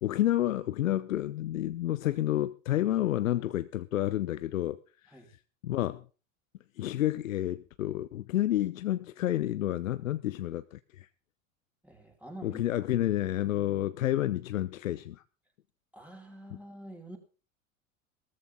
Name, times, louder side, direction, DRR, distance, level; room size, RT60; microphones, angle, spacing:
voice 1, 0.0-5.4 5.6-6.1 6.8-11.1 12.4-15.2, left 13 dB, 75° left, 0.7 m, -30 dB
voice 2, 11.8-12.6 15.9-17.2, right 1 dB, 5° right, 5.0 m, -46 dB
18.0 x 14.0 x 3.8 m
figure-of-eight pair, 80°, 40 cm